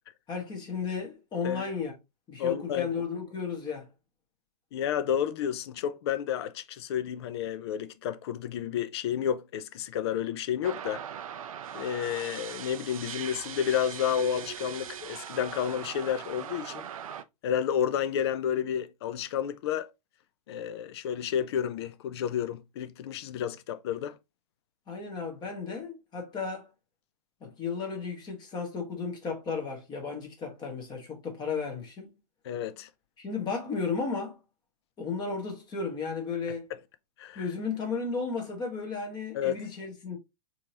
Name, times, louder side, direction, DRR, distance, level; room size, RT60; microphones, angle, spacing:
voice 1, 0.3-1.9 2.3-3.9 24.9-26.7 27.4-32.1 33.2-34.4 35.0-36.7 37.3-40.2, left 5 dB, 20° left, 1.2 m, -34 dB
voice 2, 2.4-2.9 4.7-11.0 11.7-16.9 17.4-19.9 20.5-24.2 32.4-32.9 37.2-37.5 39.3-39.5, left 9 dB, 40° left, 0.4 m, -31 dB
sound 1, 10.6-17.2, right 9 dB, 60° right, 0.4 m, -40 dB
4.3 x 2.8 x 2.8 m
figure-of-eight pair, 110°, 21 cm